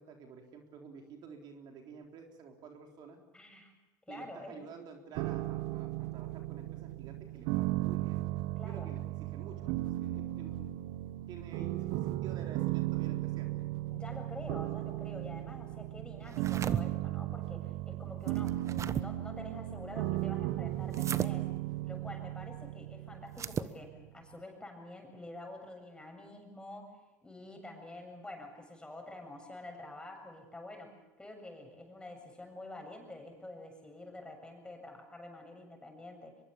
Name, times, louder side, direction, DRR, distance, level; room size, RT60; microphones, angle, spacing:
voice 1, 0.0-3.2 4.1-8.2 8.6-10.7 11.3-13.5, right 5 dB, 55° right, 3 dB, 3.8 m, -50 dB
voice 2, 3.3-3.7 4.1-4.6 8.6-8.9 13.9-21.5 21.8-26.9 27.2-36.4, left 2 dB, 10° left, 4 dB, 7.6 m, -48 dB
sound 1, 5.2-24.1, right 16 dB, 70° right, 1.0 m, -36 dB
sound 2, 16.3-16.8 18.3-19.0 20.9-21.3 23.3-23.7, right 7 dB, 35° right, 1.2 m, -35 dB
24.0 x 22.5 x 7.1 m, 1.1 s
hypercardioid pair, 90°, 9 cm